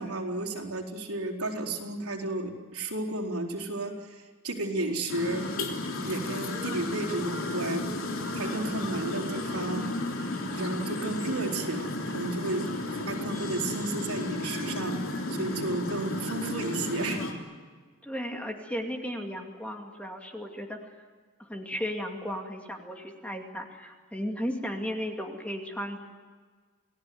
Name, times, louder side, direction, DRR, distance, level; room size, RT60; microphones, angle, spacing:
voice 1, 0.0-5.5 6.0-7.9 8.3-9.9 10.5-15.0 15.3-17.2, right 2 dB, 90° right, 0 dB, 4.2 m, -33 dB
sound 1, 5.1-17.3, left 1 dB, 65° left, 3.3 m, -33 dB
voice 2, 18.0-20.8 21.4-26.0, equal, 5° left, 2 dB, 2.5 m, -35 dB
29.0 x 18.5 x 9.5 m, 1.5 s
head